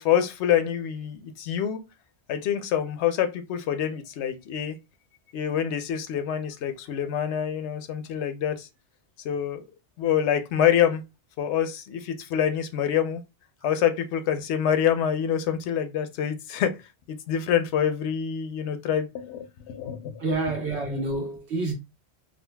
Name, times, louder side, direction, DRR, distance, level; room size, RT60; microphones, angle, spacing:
voice 1, 0.0-1.8 2.3-4.8 5.3-8.7 9.2-9.6 10.0-11.0 11.4-13.2 13.6-16.8 17.1-20.2, left 9 dB, 85° left, 0.9 m, -26 dB
voice 2, 20.2-21.7, right 2 dB, 80° right, 1.3 m, -28 dB
3.7 x 2.2 x 2.2 m
omnidirectional pair, 1.1 m